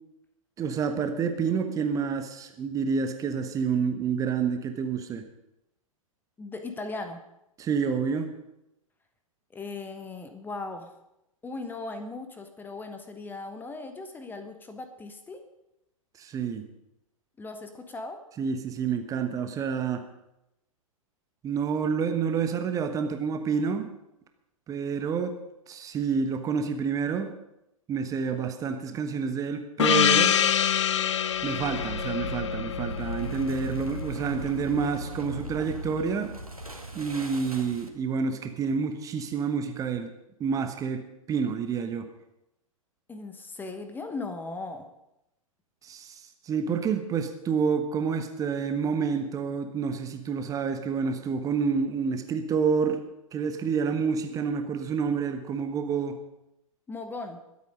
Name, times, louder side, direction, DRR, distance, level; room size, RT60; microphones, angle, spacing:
voice 1, 0.6-5.2 7.6-8.3 16.2-16.6 18.4-20.0 21.4-23.9 24.7-25.4 25.7-27.3 27.9-30.4 31.4-36.3 36.9-40.1 40.4-41.0 41.3-42.1 45.8-53.0 53.3-56.2, right 6 dB, 20° right, 7 dB, 1.2 m, -28 dB
voice 2, 6.4-7.2 9.5-11.0 11.4-15.4 17.4-18.2 43.1-44.9 56.9-57.4, left 3 dB, 10° left, 7 dB, 1.1 m, -38 dB
Gong, 29.8-34.1, left 9 dB, 55° left, 0.7 m, -25 dB
sound 1, 31.2-38.1, equal, 90° right, 2.0 m, -38 dB
22.0 x 8.5 x 5.3 m, 0.86 s
figure-of-eight pair, 105°, 18 cm